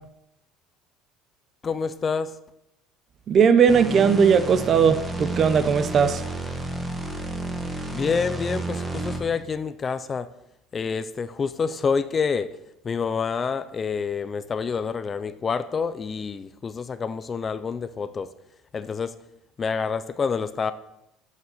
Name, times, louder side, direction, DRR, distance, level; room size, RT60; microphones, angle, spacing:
voice 1, 1.6-2.3 7.9-10.3 10.7-12.5 12.8-18.3 18.7-19.2 19.6-20.7, left 5 dB, 25° left, 13 dB, 0.4 m, -27 dB
voice 2, 3.3-6.2, right 6 dB, 35° right, 12 dB, 0.7 m, -18 dB
sound 1, 3.7-9.4, right 2 dB, 10° right, 1.2 m, -31 dB
7.3 x 6.4 x 6.9 m, 0.83 s
cardioid pair, 140°, 0 cm